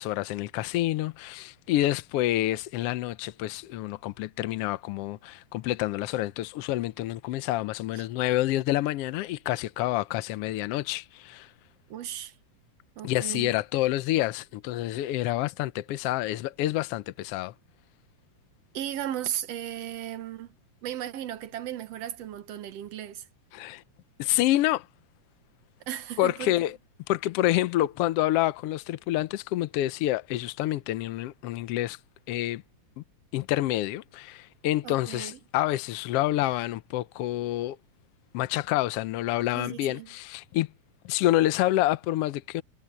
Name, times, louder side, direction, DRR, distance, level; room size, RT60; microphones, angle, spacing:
voice 1, 0.0-11.5 13.0-17.5 23.5-23.8 24.2-24.9 26.2-26.8 27.1-32.0 32.3-32.6 33.3-37.8 38.3-40.7 41.0-42.6, left 15 dB, 75° left, 1.4 m, -28 dB
voice 2, 11.9-12.3 13.0-13.5 18.7-20.5 20.8-23.2 25.9-26.5 34.8-35.4 39.5-40.1, right 11 dB, 65° right, 2.0 m, -36 dB
omnidirectional pair, 3.3 m